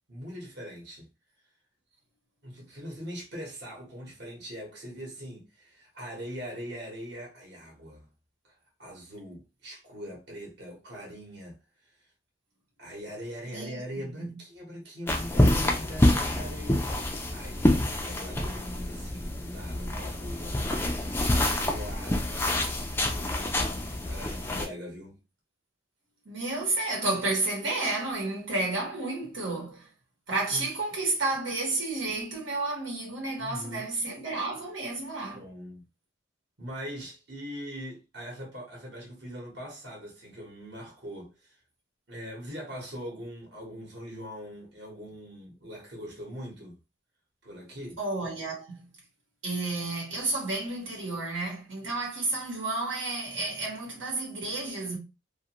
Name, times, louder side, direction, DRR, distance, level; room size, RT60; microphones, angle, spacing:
voice 1, 0.1-1.1 2.4-8.1 8.4-12.0 12.8-22.5 24.0-25.2 30.5-30.7 33.4-33.9 35.3-35.8 36.6-41.6 42.1-46.8 47.4-48.0, equal, 55° right, 1.1 m, -42 dB
voice 2, 13.5-13.8 14.2-14.3 26.2-29.9 30.3-35.4 48.0-48.9 49.4-55.0, right 2 dB, 80° right, 1.2 m, -31 dB
sound 1, 15.1-24.7, left 1 dB, 10° left, 0.3 m, -27 dB
2.5 x 2.5 x 2.9 m
head